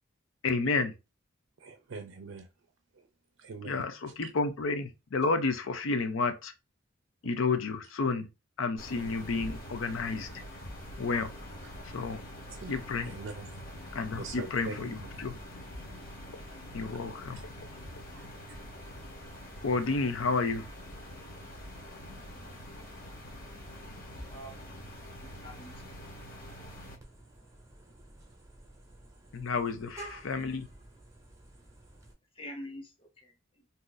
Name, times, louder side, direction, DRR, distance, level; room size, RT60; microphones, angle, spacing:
voice 1, 0.4-0.9 3.6-6.5 7.2-8.3 8.6-10.3 11.0-11.3 11.9-12.2 12.7-13.2 13.9-15.3 16.7-17.4 19.6-20.7 29.3-30.7, left 4 dB, 80° left, 0.5 m, -31 dB
voice 2, 1.6-2.5 3.4-3.8 12.6-12.8 13.0-13.5 14.2-14.8 18.1-18.2, right 4 dB, 70° right, 0.5 m, -42 dB
sound 1, 8.8-26.9, equal, 45° left, 1.0 m, -45 dB
voice 3, 24.1-24.5 25.2-26.0 32.3-33.6, equal, 25° left, 0.7 m, -46 dB
Vehicle horn car horn honking, 27.0-32.1, right 1 dB, 15° right, 0.8 m, -51 dB
2.7 x 2.5 x 3.8 m
head